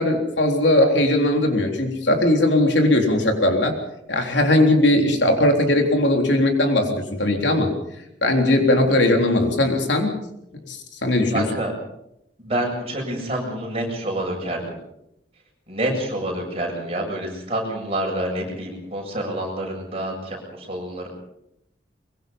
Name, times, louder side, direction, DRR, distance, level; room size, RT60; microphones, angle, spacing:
voice 1, 0.0-3.8 4.1-7.7 8.2-10.1 10.7-11.5, left 1 dB, 75° left, 4 dB, 3.6 m, -19 dB
voice 2, 11.3-11.7 12.4-14.6 15.7-21.1, right 1 dB, 30° right, 0 dB, 7.7 m, -27 dB
23.5 x 22.5 x 5.5 m, 0.80 s
head